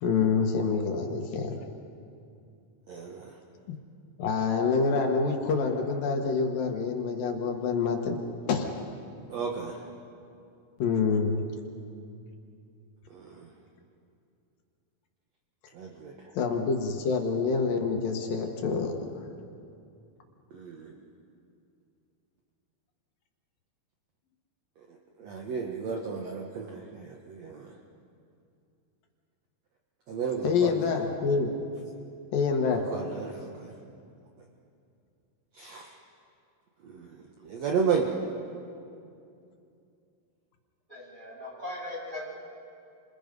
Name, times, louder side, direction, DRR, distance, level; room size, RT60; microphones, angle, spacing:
voice 1, 0.0-1.6 4.2-8.2 8.5-8.7 10.8-11.4 16.3-19.0 30.4-31.5 32.3-32.8, left 5 dB, 75° left, 3 dB, 3.2 m, -26 dB
voice 2, 2.9-3.3 9.3-9.8 13.1-13.5 15.7-16.3 20.5-20.9 25.2-27.7 30.1-31.0 32.9-33.7 35.6-35.9 36.8-37.2 37.4-38.1, right 6 dB, 55° right, 0 dB, 2.2 m, -33 dB
voice 3, 40.9-42.3, left 1 dB, 10° right, -5 dB, 8.1 m, -39 dB
30.0 x 27.0 x 5.4 m, 2.5 s
omnidirectional pair, 4.2 m